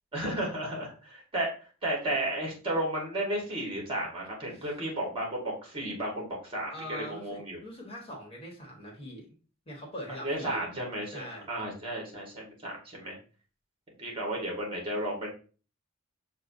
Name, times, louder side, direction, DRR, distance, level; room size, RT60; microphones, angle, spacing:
voice 1, 0.1-1.5 1.8-7.6 10.2-13.1 14.0-15.3, right 1 dB, 25° right, -1 dB, 1.5 m, -33 dB
voice 2, 6.7-9.3 9.7-10.6 11.1-11.5, equal, 25° left, -2 dB, 1.4 m, -42 dB
6.5 x 2.3 x 2.6 m, 0.37 s
head